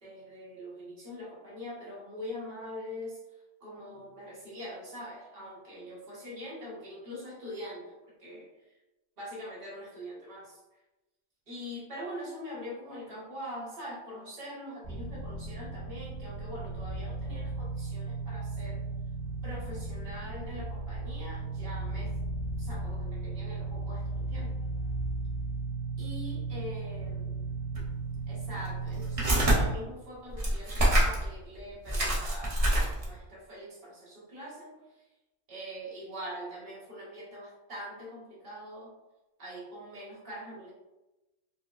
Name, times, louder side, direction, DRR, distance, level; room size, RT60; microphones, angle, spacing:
voice 1, 0.0-3.2 3.6-7.9 8.2-8.5 9.2-10.6 11.5-18.8 19.4-22.1 22.6-24.5 26.0-27.3 28.3-34.7 35.5-38.9 39.4-40.7, equal, 50° right, -6 dB, 1.3 m, -43 dB
sound 1, 14.8-29.7, right 3 dB, 70° left, 1.4 m, -36 dB
sound 2, 27.7-27.9 28.5-29.6 30.3-31.3 31.6-31.7 31.9-33.2, right 1 dB, 35° right, 0.7 m, -26 dB
4.6 x 2.0 x 2.3 m, 1.0 s
omnidirectional pair, 1.2 m